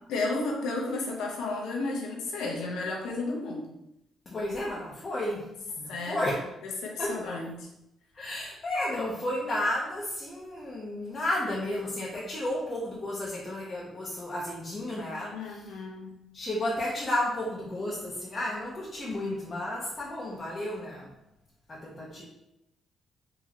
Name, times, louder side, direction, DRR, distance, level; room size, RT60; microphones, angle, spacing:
voice 1, 0.1-3.7 5.9-6.3 6.6-7.7 15.3-16.1, left 3 dB, 85° left, -1 dB, 0.9 m, -33 dB
voice 2, 4.3-5.4 5.8-6.4 7.0-7.4 8.1-15.6 16.3-21.1 21.7-22.2, left 1 dB, 35° left, -5 dB, 0.8 m, -32 dB
3.9 x 2.8 x 3.0 m, 0.87 s
cardioid pair, 90°, 0 cm